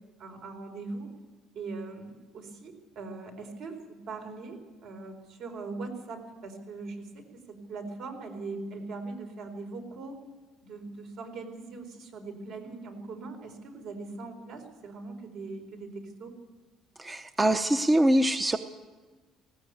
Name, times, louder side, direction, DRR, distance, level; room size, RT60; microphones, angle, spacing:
voice 1, 0.2-1.1 1.5-10.2 10.6-16.3, right 3 dB, 60° right, 5 dB, 4.5 m, -41 dB
voice 2, 17.0-18.6, right 1 dB, 15° right, 9 dB, 0.7 m, -23 dB
19.0 x 17.0 x 8.3 m, 1.3 s
cardioid pair, 145°, 0 cm